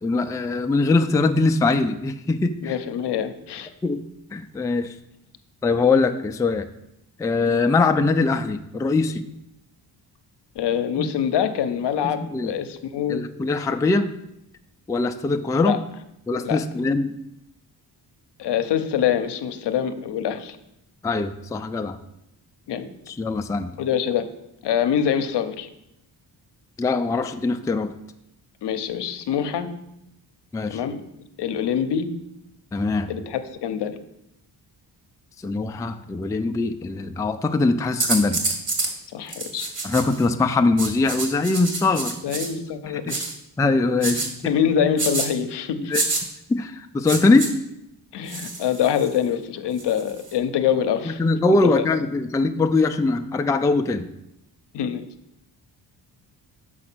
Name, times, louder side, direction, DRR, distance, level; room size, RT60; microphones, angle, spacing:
voice 1, 0.0-2.7 3.8-4.0 4.3-4.9 5.6-6.7 7.2-9.2 11.0-11.1 12.3-12.5 13.1-14.1 14.9-15.8 16.3-17.2 21.0-22.0 23.1-23.7 26.8-27.9 30.5-30.8 32.7-33.1 35.4-38.4 39.8-42.1 42.9-43.1 43.6-44.3 45.9-46.0 46.5-47.6 51.0-54.1, left 3 dB, 10° left, 7 dB, 0.3 m, -22 dB
voice 2, 2.6-3.7 10.6-13.2 15.7-15.8 16.4-16.6 18.4-20.6 22.7-22.9 23.8-24.3 24.6-25.7 28.6-29.7 30.7-31.0 31.4-32.1 33.1-34.0 39.1-39.7 42.2-43.3 44.1-45.9 48.1-51.2 51.8-51.9 54.7-55.1, left 8 dB, 70° left, 9 dB, 0.7 m, -25 dB
sound 1, 38.0-38.9 39.3-40.2 40.8-42.5 43.1-43.3 44.0-44.3 45.0-45.3 45.9-46.2 47.1-47.5 48.3-49.2 49.8-50.3, right 3 dB, 45° right, 1.5 m, -27 dB
6.2 x 4.9 x 6.1 m, 0.83 s
cardioid pair, 90°, 42 cm